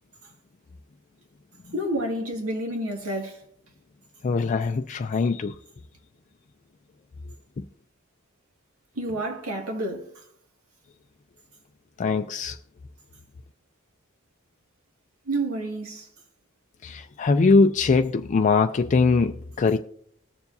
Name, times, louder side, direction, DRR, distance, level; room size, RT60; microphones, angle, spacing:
voice 1, 1.7-3.4 9.0-10.1 15.3-16.1, right 1 dB, 90° right, 2.0 m, -29 dB
voice 2, 4.2-5.5 7.6-7.7 12.0-12.6 16.8-19.8, left 4 dB, 35° left, 0.3 m, -22 dB
20.5 x 7.1 x 2.7 m
head